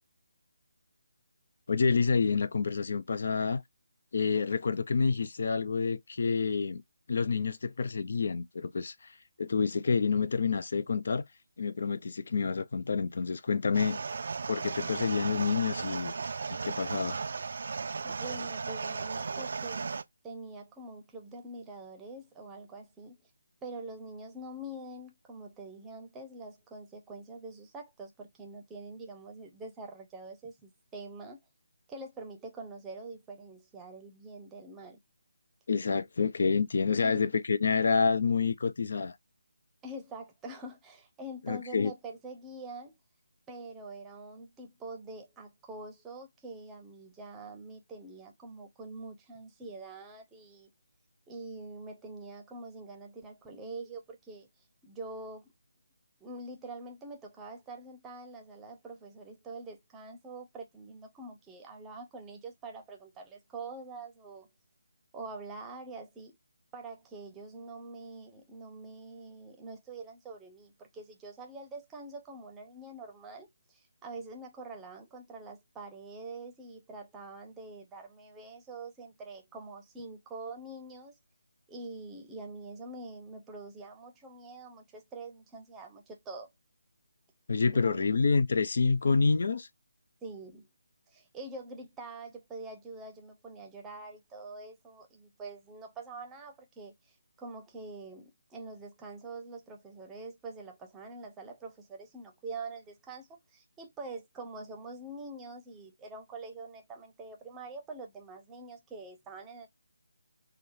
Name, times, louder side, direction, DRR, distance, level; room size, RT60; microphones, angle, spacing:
voice 1, 1.7-3.6 4.1-6.8 7.1-11.2 11.6-14.0 14.5-16.1 16.6-17.2 35.7-39.2 41.5-41.9 87.5-89.7, left 5 dB, 55° left, 0.4 m, -28 dB
sound 1, 13.7-20.0, right 4 dB, 55° right, 0.3 m, -36 dB
voice 2, 18.0-20.0 20.2-23.2 23.6-31.4 31.9-35.0 37.0-37.3 39.8-42.9 43.5-50.7 51.3-54.5 54.8-55.5 56.2-64.5 65.1-66.3 66.7-81.1 81.7-86.5 87.7-88.1 90.2-90.7 91.1-109.7, right 2 dB, 10° right, 0.7 m, -45 dB
3.6 x 2.3 x 2.6 m
figure-of-eight pair, 150°, 0 cm